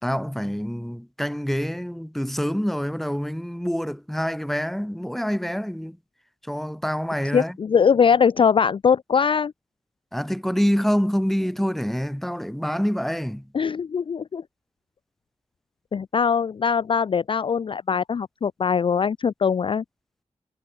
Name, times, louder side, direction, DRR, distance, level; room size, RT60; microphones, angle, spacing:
voice 1, 0.0-6.0 6.4-7.6 10.1-13.5, equal, ahead, 3.5 m, -26 dB
voice 2, 7.3-9.5 13.5-14.4 15.9-19.8, left 6 dB, 45° left, 0.4 m, -21 dB
wide cardioid pair, 145°, 12 cm